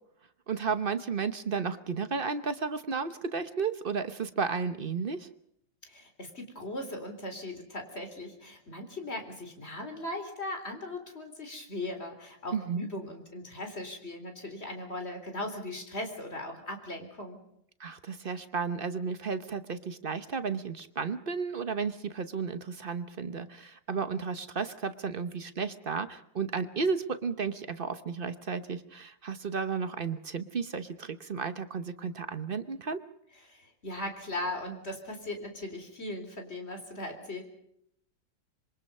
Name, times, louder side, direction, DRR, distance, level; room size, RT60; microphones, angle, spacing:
voice 1, 0.5-5.3 12.5-12.9 17.8-33.0, right 5 dB, 40° right, 11 dB, 0.8 m, -33 dB
voice 2, 5.8-17.4 33.4-37.4, left 1 dB, 35° left, 5 dB, 4.1 m, -38 dB
26.5 x 23.5 x 5.5 m, 0.73 s
omnidirectional pair, 2.0 m